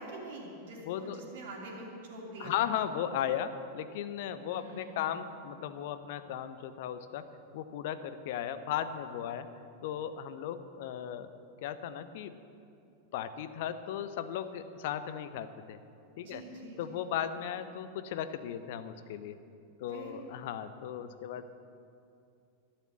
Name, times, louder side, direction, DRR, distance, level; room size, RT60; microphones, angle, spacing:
voice 1, 0.0-2.6 4.4-5.2 16.2-17.0 19.9-20.1, right 2 dB, 55° right, -2 dB, 3.5 m, -45 dB
voice 2, 0.8-1.2 2.4-9.5 9.8-11.3 11.6-12.3 13.1-15.8 16.2-16.4 16.8-19.4 19.8-21.5, left 9 dB, 50° left, 12 dB, 0.8 m, -36 dB
11.5 x 11.5 x 7.4 m, 2.6 s
figure-of-eight pair, 90°, 0 cm